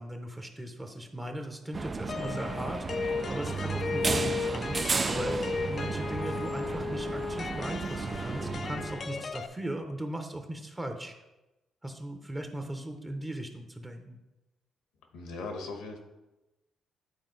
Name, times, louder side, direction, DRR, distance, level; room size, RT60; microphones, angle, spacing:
voice 1, 0.0-4.8 5.1-11.1 11.8-14.2, right 1 dB, 15° right, 5 dB, 0.9 m, -38 dB
sound 1, 1.7-9.3, right 4 dB, 35° right, 0.3 m, -34 dB
sound 2, 2.1-9.5, left 4 dB, 45° left, 0.4 m, -35 dB
voice 2, 15.1-16.0, left 3 dB, 90° left, 4 dB, 1.2 m, -38 dB
9.6 x 4.2 x 4.0 m, 1.0 s
cardioid pair, 90°, 0 cm